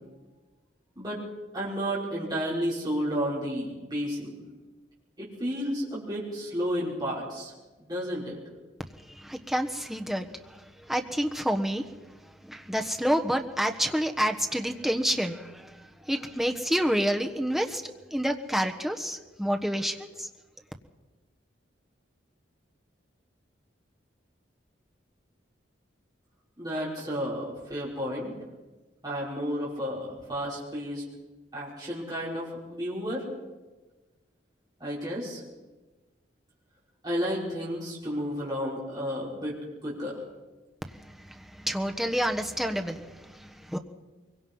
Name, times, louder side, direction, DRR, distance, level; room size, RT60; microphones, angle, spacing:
voice 1, 1.5-4.4 5.2-7.5 7.8-8.4 26.6-28.3 29.0-31.0 31.5-33.3 34.8-35.4 37.0-39.6 39.8-40.2, equal, 20° right, -7 dB, 5.9 m, -32 dB
voice 2, 9.0-20.3 40.9-43.8, equal, ahead, 3 dB, 1.3 m, -29 dB
23.5 x 23.0 x 5.7 m, 1.2 s
head